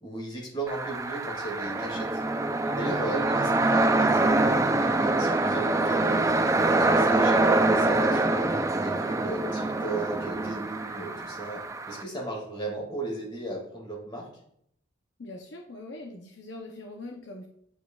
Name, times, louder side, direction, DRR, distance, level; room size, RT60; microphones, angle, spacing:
voice 1, 0.0-2.2 2.7-6.4 6.7-8.5 8.8-14.3, right 2 dB, 25° left, -2 dB, 2.1 m, -36 dB
sound 1, 0.7-12.0, right 2 dB, 15° right, 0.3 m, -25 dB
voice 2, 15.2-17.5, left 2 dB, 65° left, 1 dB, 0.7 m, -42 dB
9.8 x 4.7 x 2.3 m, 0.71 s
head